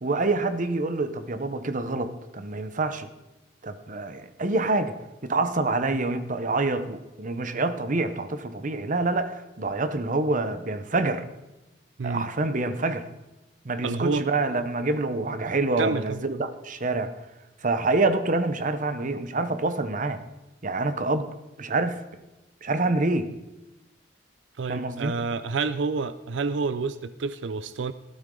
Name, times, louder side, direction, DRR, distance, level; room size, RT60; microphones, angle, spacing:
voice 1, 0.0-3.1 3.6-4.9 5.2-11.2 12.0-13.0 13.6-17.1 17.6-20.2 20.6-21.3 21.6-22.0 22.6-23.3 24.7-25.1, right 2 dB, 45° right, 10 dB, 0.9 m, -26 dB
voice 2, 13.8-14.3 15.8-16.2 24.6-27.9, right 4 dB, 90° right, 14 dB, 0.5 m, -28 dB
16.0 x 12.5 x 3.8 m, 1.0 s
head